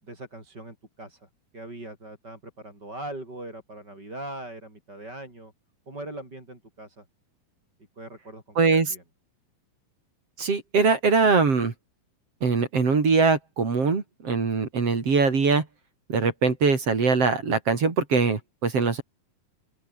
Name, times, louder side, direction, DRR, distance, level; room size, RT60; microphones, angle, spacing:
voice 1, 0.0-5.5 5.9-7.0 8.0-8.6 8.9-9.0, right 1 dB, 25° right, 8.4 m, -40 dB
voice 2, 8.6-8.9 10.4-11.7 12.4-15.7 16.1-19.0, right 4 dB, 40° right, 4.0 m, -22 dB
open air
omnidirectional pair, 4.4 m